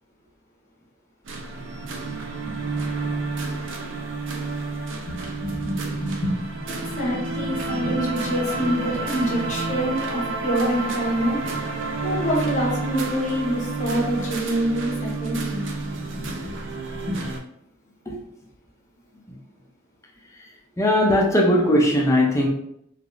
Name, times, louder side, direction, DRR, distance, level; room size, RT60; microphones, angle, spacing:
sound 1, 1.3-17.4, right 3 dB, 65° right, 0.5 m, -30 dB
voice 1, 5.1-11.4 12.0-16.6 17.1-17.2, equal, 40° left, -4 dB, 0.9 m, -26 dB
voice 2, 20.8-22.5, left 1 dB, 15° left, 0 dB, 0.4 m, -19 dB
3.3 x 2.3 x 2.4 m, 0.73 s
head